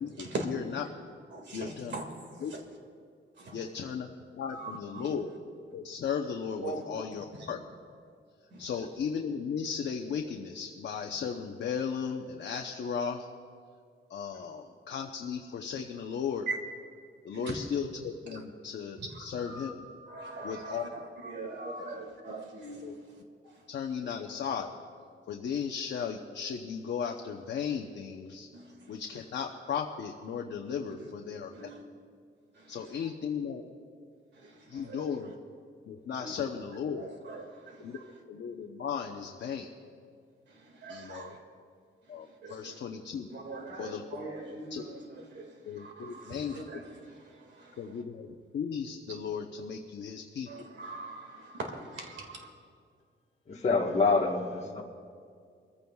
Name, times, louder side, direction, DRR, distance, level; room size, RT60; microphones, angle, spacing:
voice 1, 0.0-0.8 1.5-2.0 2.4-2.5 3.5-4.1 4.4-5.3 5.7-7.6 8.6-13.3 14.1-16.5 17.2-19.8 20.4-20.8 22.8-22.9 23.7-24.7 25.3-28.5 28.9-31.5 32.7-33.6 34.7-35.3 35.8-37.1 37.8-38.0 38.3-39.7 40.9-41.4 42.1-43.3 43.8-44.0 44.7-44.8 45.7-46.6 47.8-50.7, left 7 dB, 60° left, 0.8 m, -36 dB
voice 2, 1.3-2.1 2.5-2.6 3.4-3.5 4.5-5.1 6.6-6.8 7.3-7.5 8.5-8.7 16.5-16.6 17.3-17.6 19.0-19.1 19.4-19.7 20.1-22.8 28.5-28.6 31.5-31.8 34.4-35.1 36.2-36.3 37.0-37.8 40.8-41.4 42.4-42.7 43.3-45.0 45.3-45.5 45.8-46.8 47.6-47.7 50.5-52.5, right 3 dB, 60° right, 2.0 m, -41 dB
voice 3, 53.5-54.8, left 4 dB, 35° left, 1.3 m, -26 dB
24.5 x 15.0 x 2.3 m
wide cardioid pair, 180°, 20 cm